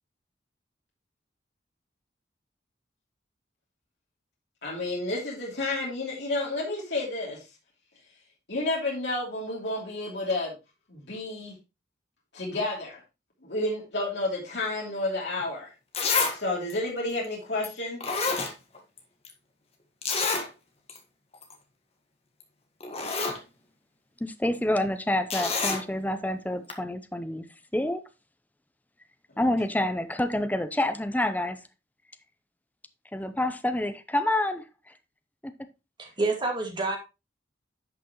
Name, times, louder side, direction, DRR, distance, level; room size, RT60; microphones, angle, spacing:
voice 1, 4.6-7.4 8.5-10.5 10.9-11.5 12.3-13.0 13.4-15.7 16.3-18.0, left 2 dB, 70° left, 2.9 m, -30 dB
Zipper (clothing), 15.4-15.5 15.9-16.4 16.7-16.8 17.6-17.7 18.0-19.0 19.2-19.3 20.0-20.5 20.9-21.0 21.3-21.5 22.4-22.5 22.8-23.4 25.3-25.8 26.7-26.8, left 4 dB, 35° left, 1.6 m, -28 dB
voice 2, 24.2-27.4 27.7-28.0 29.4-31.6 33.1-34.6 35.4-35.5, left 1 dB, 10° left, 0.6 m, -27 dB
voice 3, 36.0-37.0, right 3 dB, 25° right, 2.2 m, -28 dB
11.0 x 5.9 x 3.0 m
head